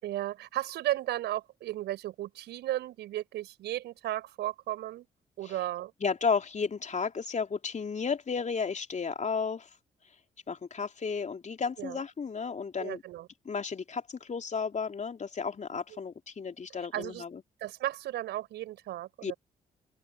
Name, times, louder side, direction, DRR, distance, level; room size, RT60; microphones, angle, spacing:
voice 1, 0.0-5.1 5.4-5.9 11.8-12.0 12.8-13.3 16.9-17.2 17.6-19.3, right 14 dB, 65° right, 4.5 m, -34 dB
voice 2, 6.0-9.7 10.5-13.0 13.4-17.4 19.2-19.3, left 5 dB, 40° left, 3.2 m, -33 dB
open air
figure-of-eight pair, 40°, 19 cm